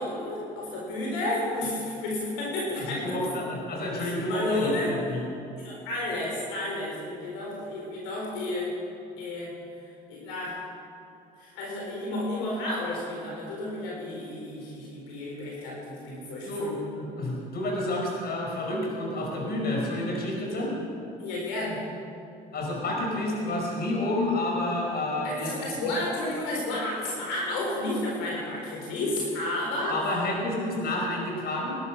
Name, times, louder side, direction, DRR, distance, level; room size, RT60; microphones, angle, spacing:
voice 1, 0.0-3.3 4.0-5.0 5.6-8.8 9.2-9.5 10.1-10.6 11.4-16.8 21.2-21.8 25.2-30.0, left 1 dB, 85° left, -3 dB, 4.1 m, -31 dB
voice 2, 2.8-5.2 16.5-16.7 17.0-20.7 22.5-25.5 29.9-31.8, left 1 dB, 50° left, -1 dB, 4.8 m, -29 dB
19.5 x 11.0 x 5.8 m, 2.6 s
supercardioid pair, 80°, 20 cm